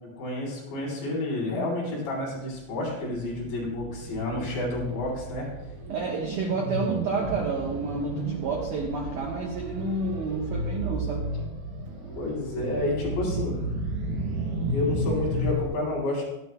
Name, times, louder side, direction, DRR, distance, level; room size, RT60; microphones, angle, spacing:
voice 1, 0.2-5.5 12.2-13.6 14.7-16.2, left 2 dB, 60° left, -4 dB, 6.4 m, -30 dB
sound 1, 2.6-15.7, right 1 dB, 55° right, 4.3 m, -33 dB
voice 2, 5.9-11.3, right 3 dB, 80° right, 0 dB, 1.8 m, -30 dB
24.5 x 11.0 x 2.3 m, 1.0 s
omnidirectional pair, 5.8 m